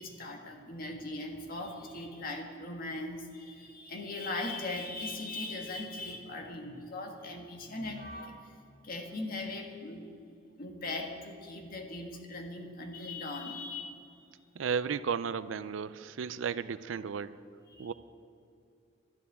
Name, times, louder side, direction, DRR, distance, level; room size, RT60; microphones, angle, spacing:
voice 1, 0.0-8.5 8.8-10.1 10.6-14.0 17.7-17.9, left 2 dB, 45° left, 2 dB, 1.6 m, -39 dB
voice 2, 14.5-17.4 17.8-17.9, right 6 dB, 75° right, 15 dB, 0.4 m, -34 dB
12.5 x 7.0 x 9.9 m, 2.5 s
head